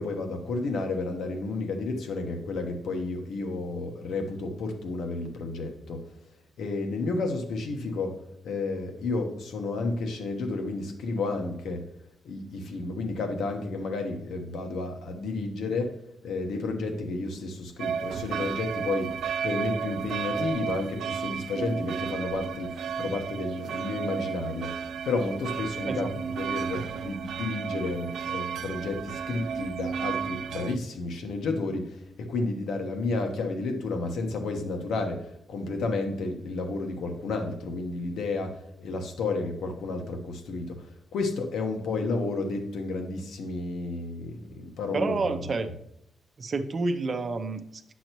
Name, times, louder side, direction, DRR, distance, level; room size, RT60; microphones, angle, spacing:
voice 1, 0.0-6.0 6.6-11.8 12.2-19.1 19.4-45.2, left 3 dB, 85° left, 4 dB, 1.2 m, -31 dB
sound 1, 17.8-30.8, right 7 dB, 85° right, 0.4 m, -33 dB
voice 2, 44.9-45.7 46.4-47.9, right 3 dB, 40° right, 8 dB, 0.6 m, -29 dB
9.3 x 6.2 x 3.0 m, 0.78 s
wide cardioid pair, 145°, 0 cm